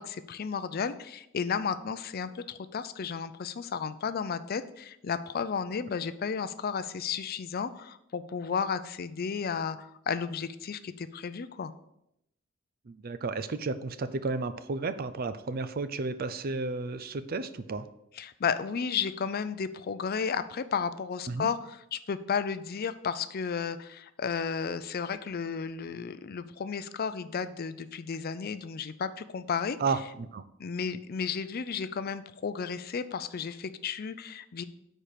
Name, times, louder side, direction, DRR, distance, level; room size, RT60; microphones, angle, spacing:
voice 1, 0.0-11.7 18.2-29.8 30.6-34.6, left 6 dB, 45° left, 13 dB, 0.4 m, -33 dB
voice 2, 12.9-17.9 21.3-21.5 29.8-30.4, right 3 dB, 45° right, 13 dB, 0.5 m, -32 dB
9.9 x 4.4 x 4.9 m, 0.80 s
head